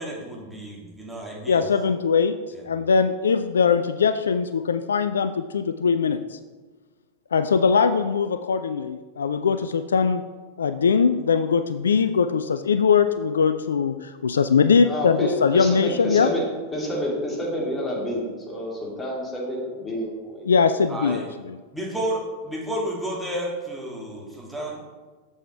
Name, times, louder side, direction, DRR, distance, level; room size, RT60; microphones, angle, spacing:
voice 1, 0.0-1.7 2.5-2.6 20.9-21.2 21.7-24.8, right 1 dB, 5° right, -5 dB, 2.4 m, -31 dB
voice 2, 1.5-2.4 2.7-6.4 7.3-10.2 10.6-16.3 20.4-21.6, left 6 dB, 70° left, 11 dB, 0.3 m, -21 dB
voice 3, 14.8-16.4 16.7-20.6 21.0-21.2, equal, 15° left, -3 dB, 2.8 m, -29 dB
7.1 x 7.0 x 4.5 m, 1.3 s
figure-of-eight pair, 90°, 0 cm